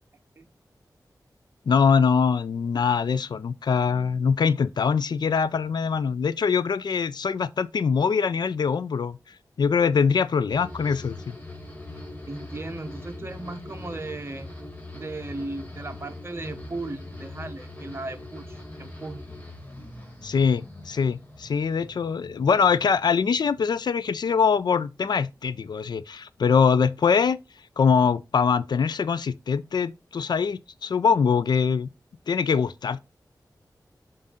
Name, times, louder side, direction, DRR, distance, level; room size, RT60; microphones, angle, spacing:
voice 1, 1.7-9.2 9.6-11.4 20.2-27.4 27.8-31.9 32.3-33.0, left 6 dB, 75° left, 0.4 m, -23 dB
sound 1, 10.5-23.8 24.1-24.8, left 2 dB, 20° left, 1.9 m, -42 dB
voice 2, 12.3-14.5 14.9-19.3, right 2 dB, 35° right, 0.9 m, -36 dB
7.2 x 2.6 x 5.5 m
wide cardioid pair, 105°, 7 cm